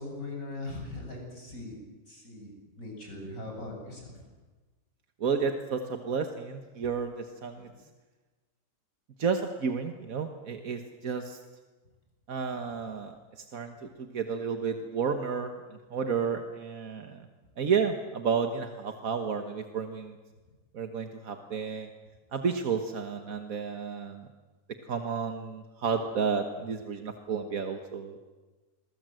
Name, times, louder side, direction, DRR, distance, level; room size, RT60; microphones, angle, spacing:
voice 1, 0.0-1.8 2.1-4.2 7.6-7.7, left 2 dB, 80° left, 0 dB, 8.0 m, -40 dB
voice 2, 5.2-7.7 9.2-11.4 12.3-17.3 17.6-20.2 20.7-21.9 22.3-24.3 24.9-28.2, right 6 dB, 80° right, 6 dB, 1.8 m, -31 dB
28.0 x 23.0 x 7.8 m, 1.3 s
omnidirectional pair, 1.4 m